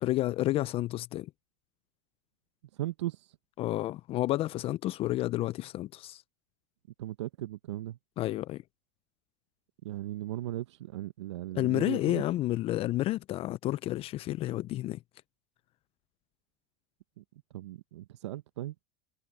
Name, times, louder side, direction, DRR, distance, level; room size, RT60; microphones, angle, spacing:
voice 1, 0.0-1.3 3.6-6.2 8.2-8.6 11.6-15.0, left 15 dB, 40° left, 0.6 m, -30 dB
voice 2, 2.7-3.3 7.0-8.0 9.8-12.2 17.2-17.3 17.5-18.7, right 14 dB, 75° right, 1.2 m, -37 dB
hypercardioid pair, 100°, 15 cm